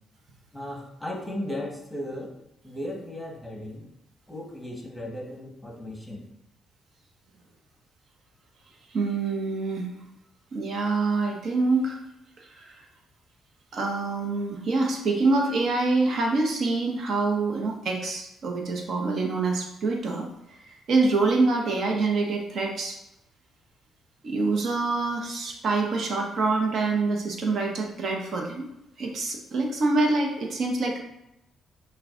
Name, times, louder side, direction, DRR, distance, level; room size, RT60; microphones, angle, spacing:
voice 1, 0.5-2.3 2.6-3.9 4.3-6.2, left 1 dB, ahead, 0 dB, 1.3 m, -36 dB
voice 2, 8.9-9.9 10.5-12.0 12.4-12.8 13.7-20.3 20.6-23.0 24.2-28.7 29.0-31.0, right 3 dB, 60° right, 1 dB, 1.0 m, -26 dB
5.8 x 2.4 x 3.8 m, 0.83 s
cardioid pair, 90°, 0 cm